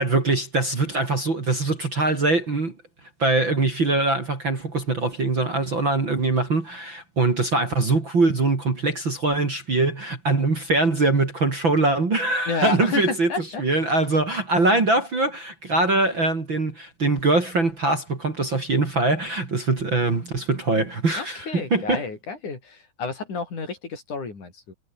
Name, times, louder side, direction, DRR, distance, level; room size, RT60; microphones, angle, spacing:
voice 1, 0.0-2.7 3.2-22.0, right 2 dB, 30° right, 3.4 m, -22 dB
voice 2, 12.5-13.6 21.2-24.7, left 4 dB, 45° left, 7.2 m, -30 dB
omnidirectional pair, 5.1 m